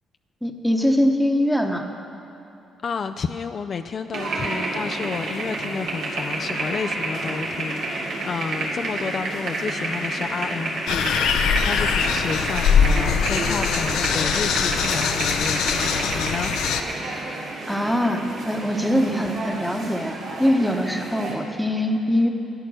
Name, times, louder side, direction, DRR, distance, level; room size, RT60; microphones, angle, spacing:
voice 1, 0.4-1.9 17.7-22.3, equal, ahead, 4 dB, 1.1 m, -22 dB
voice 2, 2.8-16.5 19.1-19.3, left 5 dB, 50° left, 7 dB, 0.4 m, -31 dB
sound 1, 4.1-21.4, right 2 dB, 80° right, 2.6 m, -29 dB
sound 2, 10.9-16.8, left 7 dB, 85° left, 0.6 m, -22 dB
12.5 x 9.8 x 6.3 m, 2.9 s
cardioid pair, 90°, 0 cm